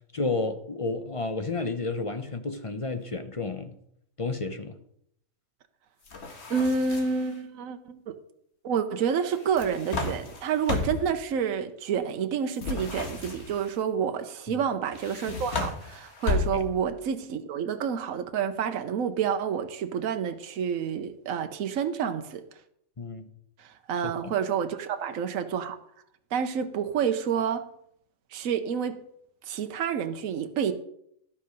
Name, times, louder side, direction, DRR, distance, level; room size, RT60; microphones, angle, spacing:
voice 1, 0.1-3.8 4.2-4.8 14.5-14.6 16.5-16.6 23.0-23.3 24.0-24.3, left 3 dB, 30° left, 0.6 m, -31 dB
sound 1, 6.1-7.3 9.3-11.2 12.6-13.7 14.9-16.9, left 4 dB, 55° left, 1.7 m, -33 dB
voice 2, 6.5-8.1 8.6-22.4 23.6-25.8 26.3-27.7 28.3-29.0 29.4-30.7, right 7 dB, 75° right, 1.2 m, -29 dB
12.0 x 8.1 x 5.2 m
omnidirectional pair, 1.4 m